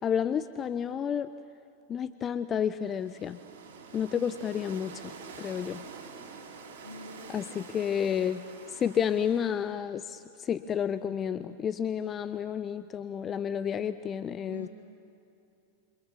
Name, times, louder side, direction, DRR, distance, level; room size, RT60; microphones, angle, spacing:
voice 1, 0.0-1.3 1.9-3.4 3.9-5.8 7.3-8.4 8.7-14.7, left 8 dB, 25° left, 14 dB, 0.6 m, -31 dB
sound 1, 2.8-9.8, right 5 dB, 60° right, 3.6 m, -47 dB
voice 2, 6.8-8.2 14.5-14.7, left 3 dB, 75° left, 5 dB, 1.9 m, -46 dB
28.0 x 26.0 x 7.3 m, 2.7 s
figure-of-eight pair, 90°, 0 cm